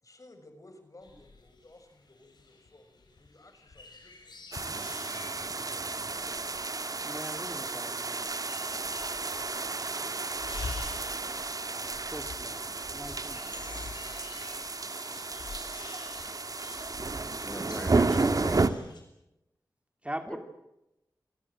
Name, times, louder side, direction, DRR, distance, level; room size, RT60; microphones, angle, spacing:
voice 1, 0.0-4.8, left 2 dB, 50° left, 8 dB, 6.7 m, -57 dB
sound 1, 1.0-19.0, left 3 dB, 80° left, 6.9 m, -47 dB
sound 2, 4.5-18.7, right 3 dB, 55° right, 1.9 m, -32 dB
voice 2, 7.0-8.3 12.1-12.6 12.9-13.8 20.0-20.4, right 1 dB, 15° right, 7 dB, 2.7 m, -41 dB
voice 3, 17.4-18.7 20.2-20.4, equal, 15° left, 9 dB, 5.9 m, -40 dB
28.5 x 21.5 x 8.6 m, 0.89 s
cardioid pair, 50°, 7 cm